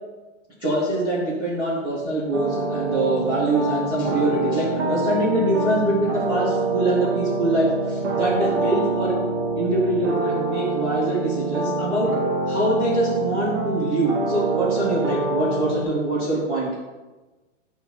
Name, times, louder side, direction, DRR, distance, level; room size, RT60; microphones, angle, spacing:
voice 1, 0.6-9.1 9.5-12.1 12.5-16.7, right 1 dB, 10° right, -10 dB, 0.9 m, -24 dB
sound 1, 2.3-15.9, right 3 dB, 65° right, 1.1 m, -26 dB
6.7 x 3.0 x 5.5 m, 1.2 s
hypercardioid pair, 165°, 38 cm